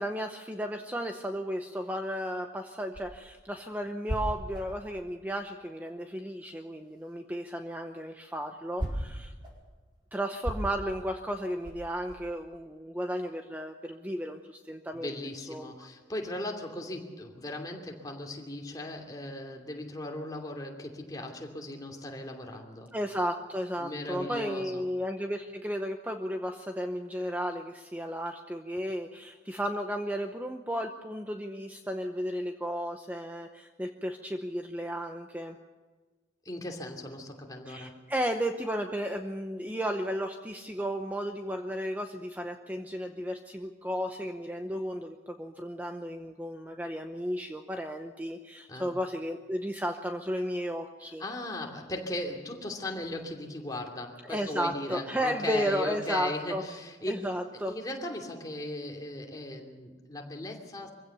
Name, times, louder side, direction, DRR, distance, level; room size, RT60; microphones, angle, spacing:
voice 1, 0.0-9.3 10.1-15.2 15.5-15.7 22.9-35.6 37.7-51.2 54.3-56.6 57.1-57.7, equal, 10° right, 5 dB, 0.8 m, -34 dB
sound 1, 2.7-6.3 6.6-12.4, equal, 25° right, 5.1 m, -38 dB
voice 2, 14.9-22.9 23.8-24.8 36.4-38.1 48.7-48.9 51.2-57.3 57.7-60.9, left 1 dB, 20° left, 1 dB, 2.7 m, -38 dB
24.0 x 16.0 x 6.9 m, 1.4 s
head